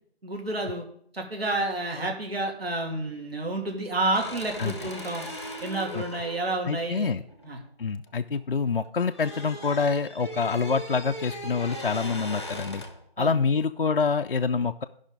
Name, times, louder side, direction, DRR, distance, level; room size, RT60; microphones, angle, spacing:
voice 1, 0.2-0.8 1.1-5.3 5.6-7.1 7.4-7.6 13.2-13.4, right 2 dB, 65° right, 1 dB, 2.8 m, -30 dB
sound 1, 4.1-8.4 8.7-13.1, equal, 25° left, 0.7 m, -39 dB
voice 2, 4.6-4.9 5.9-6.0 6.6-7.2 7.8-12.8 13.2-14.8, left 5 dB, 55° left, 6 dB, 0.4 m, -26 dB
15.0 x 5.5 x 3.8 m, 0.65 s
figure-of-eight pair, 175°, 33 cm